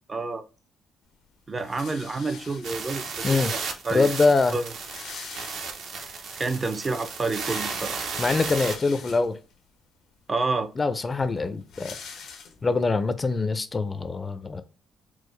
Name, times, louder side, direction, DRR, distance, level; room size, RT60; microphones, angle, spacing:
voice 1, 0.1-0.4 1.5-4.1 4.5-4.7 6.4-8.1 10.3-10.7, right 3 dB, 30° right, 0.4 m, -29 dB
sound 1, 1.6-3.0 3.9-4.0 4.2-4.3 4.5-6.1 6.5-6.6 8.0-9.6 10.2-10.3 10.6-12.9, left 6 dB, 85° left, 0.9 m, -44 dB
sound 2, 2.6-8.8, right 4 dB, 80° right, 0.8 m, -34 dB
voice 2, 3.9-4.6 8.2-9.4 10.8-11.9 12.6-14.6, left 3 dB, 30° left, 0.4 m, -24 dB
4.6 x 2.0 x 3.1 m
cardioid pair, 90°, 0 cm